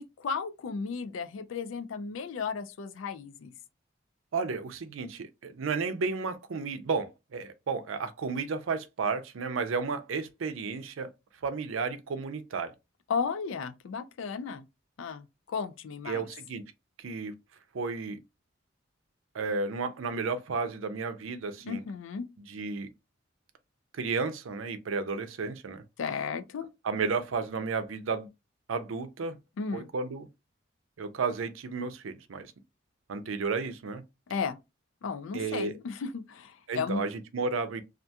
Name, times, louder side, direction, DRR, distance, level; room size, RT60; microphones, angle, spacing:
voice 1, 0.0-3.5 13.1-14.6 15.0-16.3 21.6-22.3 26.0-26.7 29.6-29.9 34.3-34.6 35.0-37.0, left 5 dB, 75° left, 0.4 m, -34 dB
voice 2, 4.3-11.1 11.4-12.7 16.1-16.6 17.0-17.3 17.7-18.2 19.3-21.8 22.5-22.9 23.9-25.8 26.8-28.3 28.7-29.4 29.7-30.3 31.0-32.5 33.1-34.0 35.3-35.7 36.7-37.8, right 4 dB, 85° right, 0.5 m, -32 dB
2.4 x 2.3 x 2.7 m
head